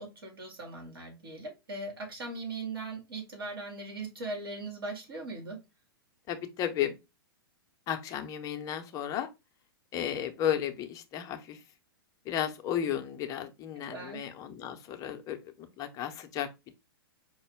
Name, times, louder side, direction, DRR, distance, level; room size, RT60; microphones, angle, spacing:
voice 1, 0.0-5.6 13.9-14.2, right 3 dB, 70° right, 2.0 m, -39 dB
voice 2, 6.3-6.9 7.9-9.3 9.9-11.6 12.3-16.5, left 10 dB, 25° left, 0.6 m, -34 dB
5.0 x 2.1 x 3.4 m
figure-of-eight pair, 105°, 13 cm